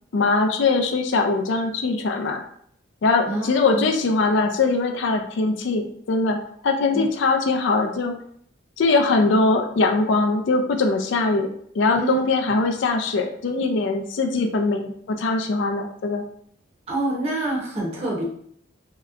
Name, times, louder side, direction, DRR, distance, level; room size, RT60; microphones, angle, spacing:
voice 1, 0.1-2.4 3.0-6.4 6.6-8.1 8.8-11.5 11.7-16.2, left 3 dB, 65° left, 4 dB, 0.4 m, -21 dB
voice 2, 3.3-3.9 6.9-7.1 11.9-12.6 16.9-18.2, right 2 dB, 30° right, -4 dB, 0.7 m, -27 dB
3.1 x 2.8 x 2.4 m, 0.65 s
head